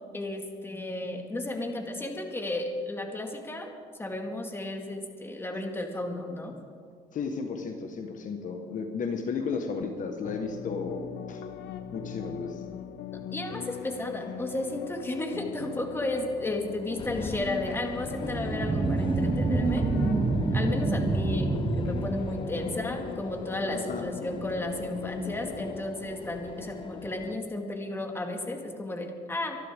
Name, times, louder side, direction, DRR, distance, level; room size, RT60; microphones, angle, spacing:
voice 1, 0.0-3.7 4.0-6.6 13.1-19.9 20.5-29.6, left 1 dB, 15° left, 3 dB, 2.1 m, -33 dB
voice 2, 7.1-11.4 11.9-12.6 22.6-22.9 23.7-24.0, left 5 dB, 50° left, 4 dB, 1.5 m, -34 dB
sound 1, 10.2-25.8, left 8 dB, 80° left, 0.9 m, -40 dB
sound 2, 17.0-27.4, left 5 dB, 30° left, 0.7 m, -41 dB
sound 3, 18.1-23.1, right 3 dB, 25° right, 0.9 m, -27 dB
25.0 x 11.5 x 3.7 m, 2.2 s
cardioid pair, 110°, 17 cm